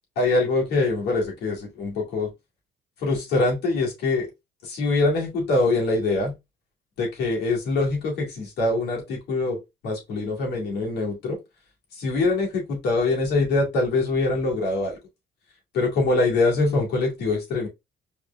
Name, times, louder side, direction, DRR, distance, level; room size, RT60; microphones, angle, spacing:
voice 1, 0.2-2.3 3.0-4.3 4.6-6.3 7.0-11.4 12.0-15.0 15.7-17.7, left 3 dB, 75° left, 2.2 m, -24 dB
4.7 x 3.4 x 2.4 m
cardioid pair, 110°, 17 cm